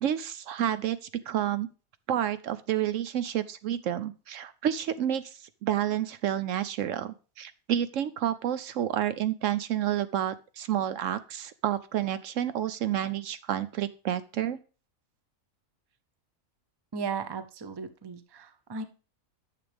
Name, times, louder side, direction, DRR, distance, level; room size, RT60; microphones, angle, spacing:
voice 1, 0.0-1.7 2.1-14.6, right 10 dB, 70° right, 13 dB, 0.9 m, -30 dB
voice 2, 16.9-18.8, right 5 dB, 25° right, 11 dB, 0.6 m, -36 dB
10.0 x 6.9 x 3.5 m, 0.35 s
omnidirectional pair, 1.4 m